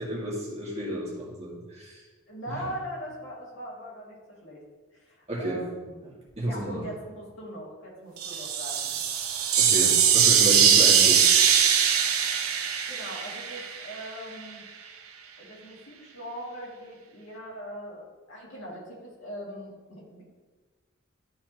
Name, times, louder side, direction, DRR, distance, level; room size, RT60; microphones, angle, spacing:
voice 1, 0.0-2.0 2.5-2.7 5.3-5.6 6.4-6.8 9.6-11.3, equal, 30° right, -6 dB, 2.1 m, -32 dB
voice 2, 2.3-4.6 5.0-6.0 6.4-9.0 12.9-14.6 15.4-20.2, equal, 65° left, -5 dB, 2.4 m, -40 dB
sound 1, 8.2-14.1, right 8 dB, 90° right, 0.7 m, -21 dB
12.0 x 4.1 x 3.0 m, 1.3 s
head